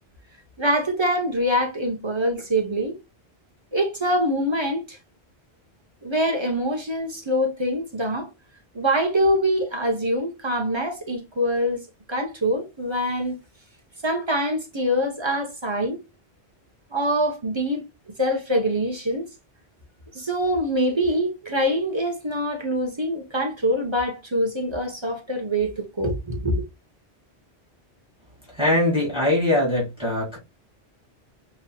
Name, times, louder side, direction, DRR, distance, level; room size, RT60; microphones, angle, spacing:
voice 1, 0.6-3.0 3.7-5.0 6.0-8.3 8.7-11.8 12.1-13.4 14.0-16.0 16.9-19.3 20.1-26.6, equal, 25° right, 0.9 m, -24 dB
voice 2, 28.5-30.4, left 1 dB, 5° right, 2.3 m, -22 dB
5.4 x 3.0 x 2.3 m
omnidirectional pair, 1.1 m